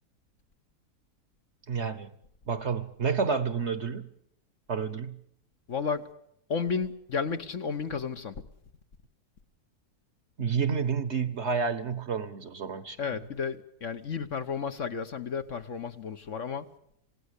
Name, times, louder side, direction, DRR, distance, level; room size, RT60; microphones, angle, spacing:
voice 1, 1.7-2.1 2.5-4.1 4.7-5.2 10.4-13.0, right 6 dB, 50° right, 1.3 m, -29 dB
voice 2, 5.7-6.1 6.5-8.4 13.0-16.7, left 5 dB, 55° left, 1.3 m, -32 dB
26.5 x 18.0 x 8.4 m
omnidirectional pair, 1.7 m